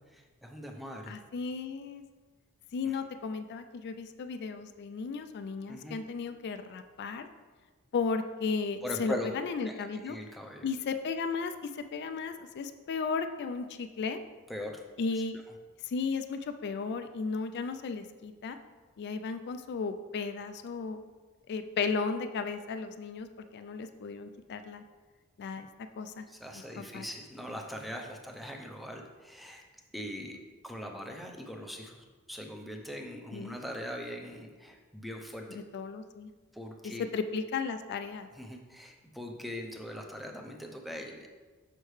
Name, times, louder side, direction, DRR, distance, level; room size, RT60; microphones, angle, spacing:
voice 1, 0.0-1.2 2.8-3.0 5.7-6.0 8.8-9.3 9.6-10.7 14.5-14.8 15.3-15.4 26.3-29.6 29.9-30.4 30.6-35.4 36.5-37.1 38.3-41.3, equal, ahead, 2 dB, 0.6 m, -41 dB
voice 2, 1.1-2.0 2.7-7.3 7.9-10.2 10.6-14.2 15.0-15.4 15.9-18.6 19.0-21.1 21.5-23.3 23.5-24.8 25.4-25.7 26.0-26.2 26.5-27.1 33.3-33.6 35.5-36.3 37.1-38.3, left 5 dB, 50° left, 8 dB, 0.3 m, -35 dB
6.5 x 6.3 x 3.2 m, 1.4 s
head